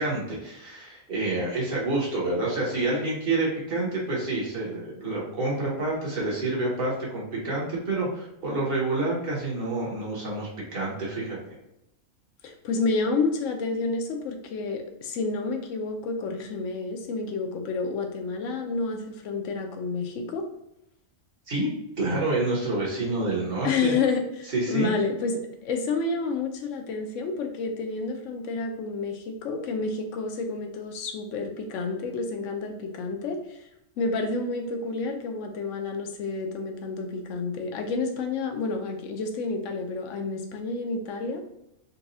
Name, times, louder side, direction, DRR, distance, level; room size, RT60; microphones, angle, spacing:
voice 1, 0.0-11.4 21.5-21.7 22.0-23.9 24.5-24.9, right 2 dB, 45° right, -5 dB, 1.3 m, -28 dB
voice 2, 12.4-20.5 23.6-33.6 34.0-41.4, left 4 dB, 70° left, 3 dB, 0.9 m, -29 dB
4.0 x 2.3 x 2.7 m, 0.84 s
omnidirectional pair, 1.4 m